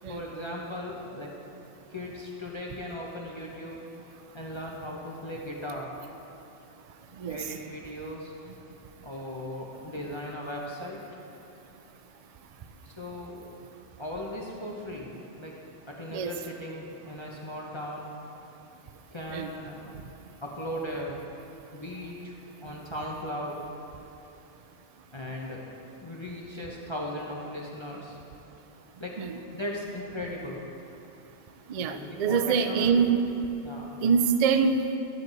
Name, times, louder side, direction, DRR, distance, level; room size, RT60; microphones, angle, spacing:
voice 1, 0.0-1.4 1.9-3.9 4.3-6.0 7.3-8.3 9.0-11.0 12.8-13.5 14.0-15.6 15.9-18.1 19.1-19.9 20.4-21.3 21.7-22.4 22.6-23.6 25.1-25.7 26.0-28.2 29.0-29.2 29.5-30.7 31.8-33.1 33.6-34.0, left 1 dB, 25° left, -3 dB, 0.8 m, -37 dB
voice 2, 31.7-33.2 34.0-35.0, right 6 dB, 70° right, 8 dB, 0.3 m, -25 dB
12.5 x 7.9 x 3.9 m, 2.8 s
omnidirectional pair, 1.2 m